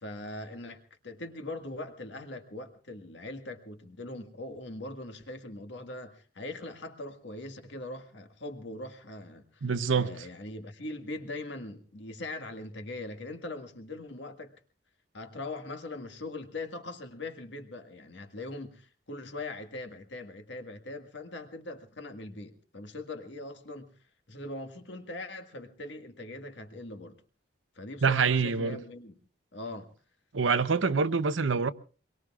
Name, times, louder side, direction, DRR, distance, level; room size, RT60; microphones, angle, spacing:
voice 1, 0.0-14.5 15.1-23.9 24.3-27.2 27.7-29.1 29.5-29.9, left 2 dB, 70° left, 1.7 m, -41 dB
voice 2, 9.6-10.3 28.0-28.8 30.3-31.7, right 5 dB, 85° right, 0.8 m, -26 dB
24.5 x 22.5 x 2.4 m
head